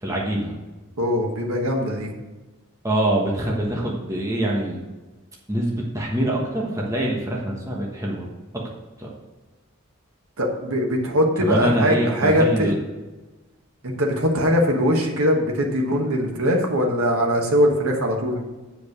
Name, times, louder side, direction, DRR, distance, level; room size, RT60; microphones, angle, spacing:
voice 1, 0.0-0.5 2.8-4.8 5.5-8.3 9.0-9.1 11.4-12.8, right 1 dB, 15° right, -3 dB, 1.3 m, -24 dB
voice 2, 1.0-2.1 10.4-12.7 13.8-18.4, equal, 75° right, 1 dB, 1.4 m, -21 dB
7.8 x 5.2 x 6.5 m, 1.2 s
head